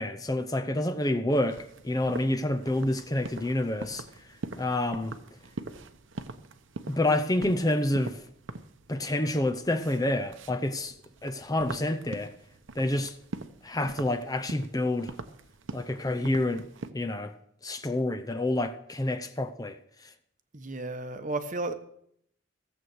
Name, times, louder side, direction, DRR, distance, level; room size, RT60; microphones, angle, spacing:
voice 1, 0.0-4.0 4.6-5.2 6.9-8.2 8.9-10.9 11.2-12.3 12.8-13.1 13.6-15.1 15.7-16.7 16.9-17.3 17.6-19.8, left 1 dB, 20° left, 0.6 m, -28 dB
sound 1, 1.3-16.9, right 2 dB, 70° right, 0.9 m, -43 dB
voice 2, 20.5-21.7, right 2 dB, 40° right, 1.0 m, -33 dB
15.5 x 7.9 x 6.3 m
head